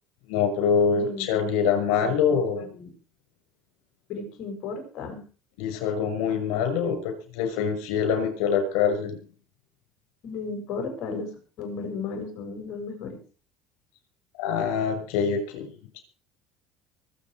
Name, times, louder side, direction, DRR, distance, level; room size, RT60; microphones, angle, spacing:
voice 1, 0.3-2.6 5.6-9.2 14.4-15.7 15.9-16.0, left 6 dB, 80° left, 7 dB, 6.4 m, -25 dB
voice 2, 0.9-1.5 2.0-2.9 4.1-5.2 10.2-11.3 11.6-13.2, left 4 dB, 60° left, 3 dB, 7.6 m, -35 dB
24.0 x 8.6 x 5.1 m, 0.39 s
supercardioid pair, 100°, 0 cm